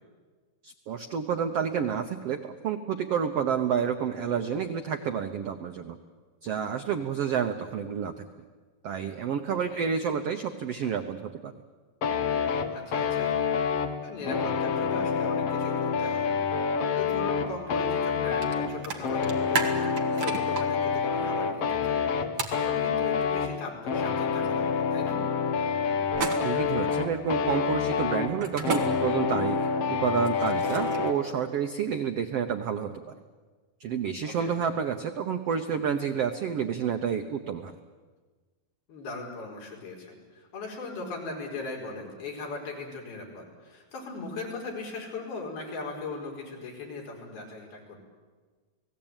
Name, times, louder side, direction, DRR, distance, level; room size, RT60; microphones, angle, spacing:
voice 1, 0.6-6.0 6.4-8.2 8.8-11.5 26.2-29.6 29.9-33.1 33.8-37.7, right 7 dB, 80° right, 6 dB, 1.3 m, -29 dB
voice 2, 9.5-9.9 12.7-13.4 14.0-16.6 17.0-22.1 22.5-25.2 34.2-34.5 38.9-48.0, left 3 dB, 85° left, -1 dB, 6.7 m, -39 dB
sound 1, 12.0-31.2, left 6 dB, 55° left, 2.0 m, -28 dB
sound 2, 18.4-18.5 18.8-20.6 22.4-22.6 26.1-26.7 28.4-28.8 30.2-31.1, right 4 dB, 45° right, 2.4 m, -31 dB
29.5 x 19.0 x 9.0 m, 1.4 s
omnidirectional pair, 4.3 m